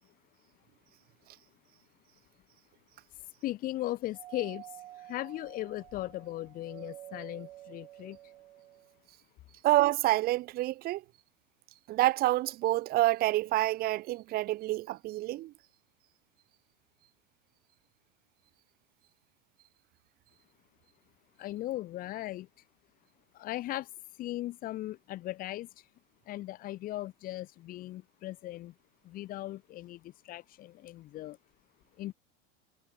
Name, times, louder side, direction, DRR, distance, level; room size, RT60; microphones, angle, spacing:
voice 1, 3.4-4.7 5.0-8.2 21.4-22.5 23.3-23.9 24.2-25.7 26.3-28.7 29.0-31.4 32.0-32.1, left 15 dB, 30° left, 1.0 m, -38 dB
Doorbell, 4.1-9.0, right 14 dB, 85° right, 2.3 m, -50 dB
voice 2, 9.6-11.0 11.9-15.5, right 17 dB, 30° right, 1.0 m, -27 dB
supercardioid pair, 155°, 31 cm